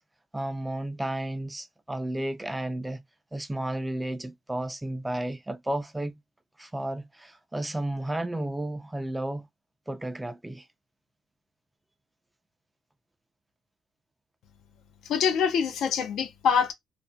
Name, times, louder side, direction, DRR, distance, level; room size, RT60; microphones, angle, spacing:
voice 1, 0.3-3.0 3.3-6.1 6.6-9.5 9.9-10.7, right 1 dB, 10° right, 0.4 m, -32 dB
voice 2, 15.1-16.7, left 7 dB, 80° left, 0.4 m, -25 dB
2.4 x 2.0 x 2.5 m
cardioid pair, 90°, 0 cm